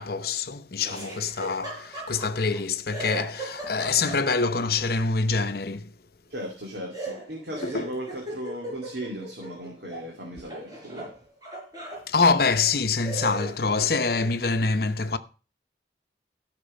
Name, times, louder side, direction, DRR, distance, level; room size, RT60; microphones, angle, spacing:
voice 1, 0.0-5.9 7.6-7.9 12.1-15.2, left 4 dB, 55° left, 0.8 m, -25 dB
Laughter, 0.8-2.6 2.9-4.6 6.9-10.1 10.4-12.0 12.6-12.7 13.0-14.4, right 2 dB, 20° right, 5.6 m, -38 dB
voice 2, 6.3-11.1, right 1 dB, 60° right, 2.5 m, -36 dB
13.5 x 6.1 x 5.4 m
head